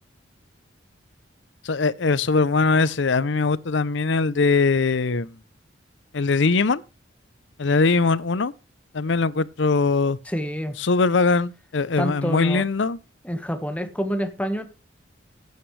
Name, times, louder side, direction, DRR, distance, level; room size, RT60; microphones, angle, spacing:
voice 1, 1.6-5.3 6.1-6.8 7.6-8.5 8.9-10.2 10.8-13.0, left 4 dB, 70° left, 0.6 m, -21 dB
voice 2, 10.2-10.8 12.0-12.7 13.2-14.7, equal, 5° left, 1.4 m, -27 dB
14.0 x 9.5 x 3.3 m
head